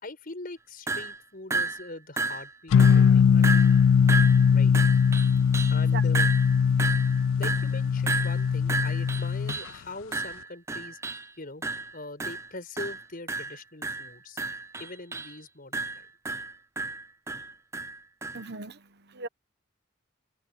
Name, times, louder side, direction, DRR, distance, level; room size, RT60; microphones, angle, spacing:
voice 1, 0.0-3.7 4.5-4.8 5.7-6.3 7.4-11.0 11.4-11.6 11.9-14.4 14.8-16.1, left 2 dB, 45° left, 5.4 m, -42 dB
sound 1, 0.9-1.2 1.5-1.9 2.2-2.5 2.8-3.1 3.4-5.8 6.1-9.8 10.1-11.3 11.6-11.9 12.2-12.5 12.8-13.0 13.3-15.4 15.7-18.5, right 3 dB, 15° right, 0.5 m, -32 dB
sound 2, 2.7-9.6, left 6 dB, 70° left, 0.3 m, -21 dB
voice 2, 5.4-6.0 6.7-6.8 18.3-19.3, right 4 dB, 55° right, 1.1 m, -40 dB
head